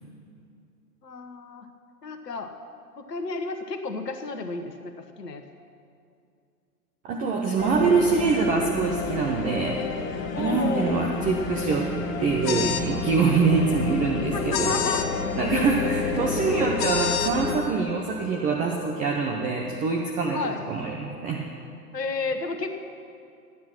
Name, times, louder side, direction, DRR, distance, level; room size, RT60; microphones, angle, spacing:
voice 1, 1.0-1.7 2.0-2.5 3.0-5.4 10.3-11.1 14.3-15.0 15.8-16.4 20.3-20.6 21.9-22.7, left 3 dB, 80° left, 6 dB, 1.3 m, -32 dB
voice 2, 7.0-9.8 10.4-11.9 12.2-14.8 15.4-20.4 20.7-21.5, right 4 dB, 15° right, 1 dB, 0.8 m, -24 dB
sound 1, 7.6-17.6, left 4 dB, 55° left, 1.4 m, -30 dB
sound 2, 12.4-12.9 14.5-15.1 16.8-17.3, left 9 dB, 30° left, 0.9 m, -28 dB
14.5 x 10.0 x 6.0 m, 2.5 s
hypercardioid pair, 120°, 48 cm